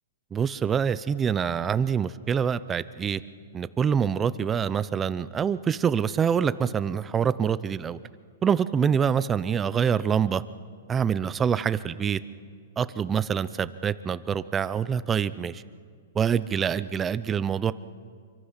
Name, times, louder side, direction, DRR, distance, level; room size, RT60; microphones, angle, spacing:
voice 1, 0.3-3.2 3.5-8.0 8.4-10.4 10.9-12.2 12.8-15.6 16.1-17.7, right 7 dB, 20° right, 15 dB, 0.7 m, -25 dB
26.5 x 24.5 x 5.9 m, 2.1 s
hypercardioid pair, 135°, 0 cm